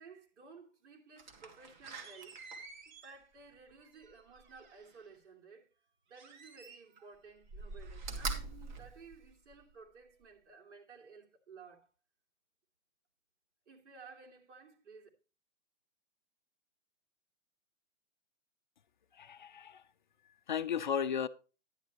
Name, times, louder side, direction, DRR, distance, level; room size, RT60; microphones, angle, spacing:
voice 1, 0.0-2.4 2.9-5.7 6.1-11.9 13.7-15.1, right 5 dB, 65° right, 3.1 m, -55 dB
Slam, 1.2-5.0 6.1-7.1 7.4-9.7 10.2-10.3, right 3 dB, 35° right, 1.7 m, -45 dB
voice 2, 19.1-19.8 20.5-21.3, left 8 dB, 40° left, 0.5 m, -34 dB
10.5 x 10.5 x 3.0 m
hypercardioid pair, 170°, 38 cm